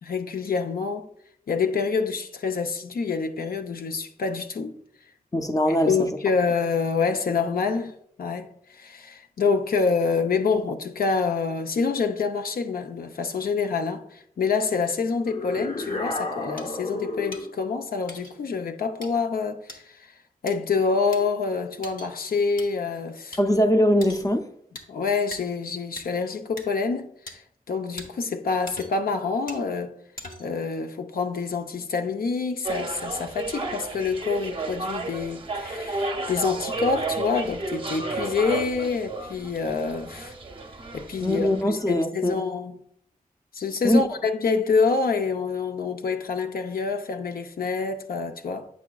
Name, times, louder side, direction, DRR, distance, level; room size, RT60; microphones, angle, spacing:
voice 1, 0.0-1.1 1.5-4.8 5.7-20.1 20.4-23.4 24.9-27.4 27.7-29.9 30.4-40.3 40.9-41.5 41.9-42.8 43.5-48.7, left 4 dB, 90° left, 0.6 m, -27 dB
voice 2, 5.3-6.1 23.4-24.5 41.2-42.4 43.8-44.0, equal, 25° left, 0.5 m, -21 dB
sound 1, 15.3-17.6, left 2 dB, 50° left, 0.8 m, -31 dB
sound 2, 16.6-16.7 17.3-17.4 18.1-18.3 19.0-19.1 19.7-19.8 20.5-20.6 21.1-21.2 21.8-22.1 22.6-22.7 23.3-23.4 24.0-24.3 24.7-24.9 25.3-25.4 26.0-26.1 26.6-26.7 27.3-27.4 28.0-28.1 28.7-29.1 29.5-29.6 30.2-30.6, left 1 dB, 70° left, 1.0 m, -40 dB
sound 3, 32.6-41.6, right 3 dB, 35° right, 0.6 m, -32 dB
8.3 x 5.8 x 2.3 m
wide cardioid pair, 125°, 15 cm